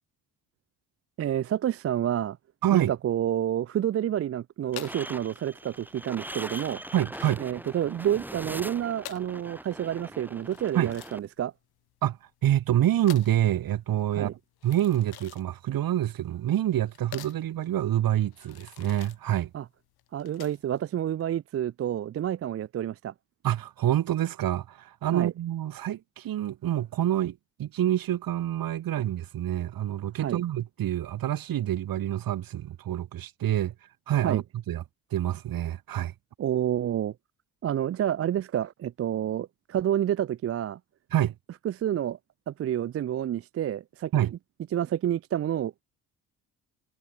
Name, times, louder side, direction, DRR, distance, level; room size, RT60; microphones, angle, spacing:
voice 1, 1.2-2.4 2.7-6.8 7.4-11.5 14.2-14.3 19.5-19.6 20.1-23.1 25.1-25.3 30.2-30.4 34.2-34.4 36.4-37.1 37.6-40.8 41.6-42.2 42.5-44.1 44.7-45.8, right 11 dB, 40° right, 0.5 m, -29 dB
voice 2, 2.6-2.9 6.9-7.4 10.7-10.9 12.0-12.2 12.4-14.4 14.6-19.5 23.4-33.7 34.1-34.8 35.1-36.1 41.1-41.3 44.1-44.3, right 12 dB, 65° right, 1.5 m, -27 dB
sound 1, 4.7-20.8, left 14 dB, 80° left, 4.6 m, -48 dB
sound 2, 4.7-11.2, right 1 dB, 5° right, 1.3 m, -41 dB
supercardioid pair, 65°, 37 cm